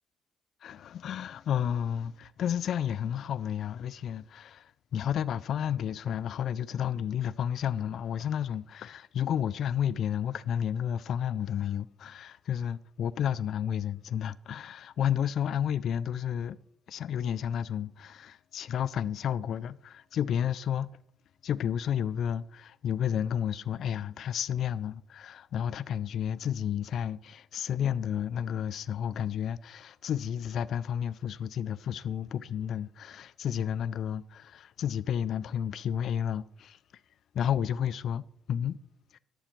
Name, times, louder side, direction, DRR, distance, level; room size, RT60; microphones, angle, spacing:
voice 1, 0.6-16.6 16.9-20.9 21.4-36.8 37.3-38.2 38.5-38.8 39.1-39.2, left 9 dB, 70° left, 0.3 m, -31 dB
11.5 x 7.0 x 4.5 m
cardioid pair, 90°, 0 cm